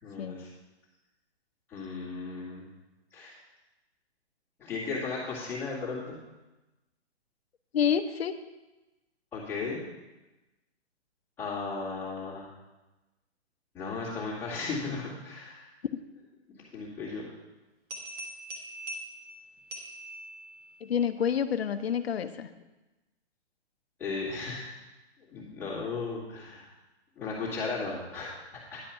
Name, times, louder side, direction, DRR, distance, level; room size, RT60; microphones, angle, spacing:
voice 1, 0.0-0.5 1.7-2.7 3.1-3.4 4.6-6.2 9.3-9.9 11.4-12.5 13.7-15.7 16.7-17.3 24.0-24.7 25.3-26.7 27.2-28.8, left 4 dB, 5° left, -10 dB, 1.9 m, -35 dB
voice 2, 7.7-8.4 15.9-16.0 20.8-22.5, left 8 dB, 60° left, 11 dB, 0.7 m, -28 dB
sound 1, 17.9-20.8, right 1 dB, 20° right, 1.2 m, -42 dB
10.0 x 5.2 x 5.6 m, 1.1 s
hypercardioid pair, 170°, 34 cm